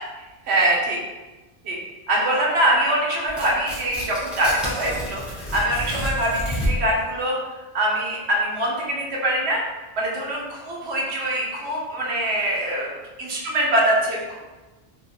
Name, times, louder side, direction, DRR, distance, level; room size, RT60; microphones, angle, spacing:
voice 1, 0.5-1.0 1.6-1.8 2.1-7.4 7.7-9.6 10.0-12.9 13.2-14.4, right 1 dB, 85° right, -3 dB, 1.0 m, -23 dB
Tearing, 3.3-7.0, equal, ahead, 0.5 m, -29 dB
3.4 x 2.2 x 3.0 m, 1.2 s
omnidirectional pair, 1.1 m